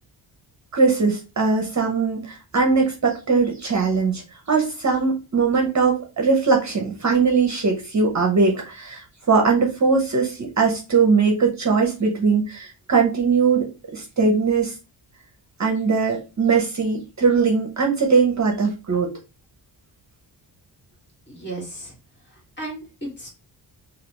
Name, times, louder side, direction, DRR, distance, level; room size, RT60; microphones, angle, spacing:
voice 1, 0.7-4.2 4.5-13.7 13.9-14.7 15.6-19.1, right 4 dB, 40° right, 1 dB, 0.7 m, -20 dB
voice 2, 21.3-22.0 22.3-23.3, right 2 dB, 25° left, -3 dB, 1.6 m, -35 dB
3.3 x 2.5 x 2.9 m, 0.30 s
wide cardioid pair, 135°, 43 cm